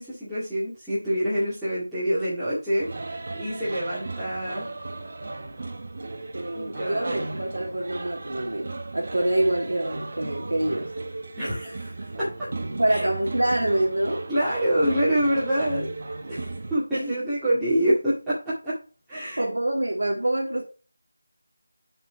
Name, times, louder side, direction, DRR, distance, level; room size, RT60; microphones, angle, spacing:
voice 1, 0.0-4.6 6.5-7.2 11.4-12.5 12.9-13.1 14.3-15.9 16.3-18.8 19.1-19.5, equal, 5° right, 2.2 m, -26 dB
sound 1, 2.8-16.8, right 2 dB, 45° right, 1.4 m, -36 dB
voice 2, 6.3-10.9 12.8-14.3 16.9-17.1 19.4-20.6, right 1 dB, 75° right, 2.4 m, -26 dB
7.9 x 4.3 x 5.7 m
figure-of-eight pair, 170°, 0 cm